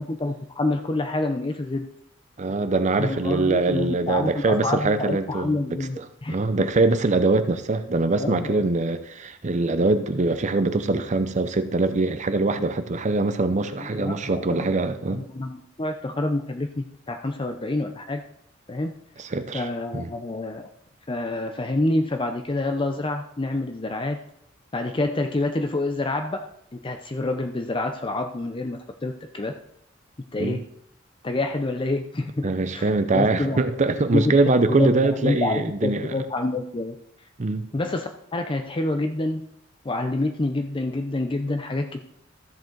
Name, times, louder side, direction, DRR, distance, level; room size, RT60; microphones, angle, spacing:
voice 1, 0.0-1.9 3.0-6.7 8.2-8.6 13.9-14.7 15.1-18.2 18.7-18.9 19.5-20.7 21.1-24.2 24.7-26.5 26.7-29.5 30.3-30.6 31.2-33.6 34.0-37.0 37.7-39.5 39.8-42.0, left 2 dB, 25° left, 5 dB, 0.6 m, -27 dB
voice 2, 2.4-5.6 6.0-15.2 19.2-19.7 19.9-20.1 30.4-30.6 32.4-36.2 37.4-37.7, right 3 dB, 40° right, 10 dB, 0.6 m, -23 dB
13.5 x 7.7 x 3.9 m, 0.73 s
head